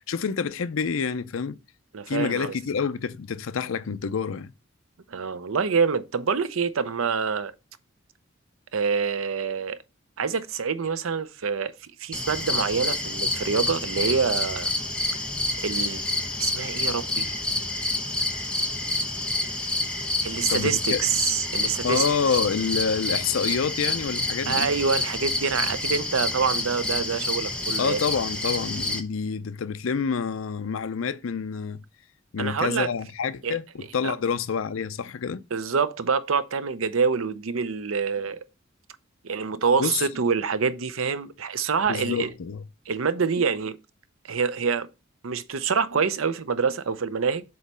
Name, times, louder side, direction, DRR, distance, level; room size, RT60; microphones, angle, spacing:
voice 1, 0.1-1.6 2.1-4.5 20.5-21.0 21.8-24.7 27.8-31.8 32.3-35.4 39.8-40.1 41.9-42.6, left 6 dB, 80° left, 0.5 m, -27 dB
voice 2, 1.9-2.6 5.1-7.5 8.7-9.8 10.2-11.7 12.0-14.7 15.6-16.1 16.4-17.3 20.2-22.0 24.5-28.0 32.4-32.9 33.4-33.6 34.0-34.2 35.5-38.4 39.2-42.3 42.9-43.8 44.3-44.9 45.2-47.4, right 5 dB, 90° right, 0.6 m, -26 dB
sound 1, 12.1-29.0, left 2 dB, 5° left, 1.0 m, -28 dB
7.7 x 3.1 x 5.4 m
head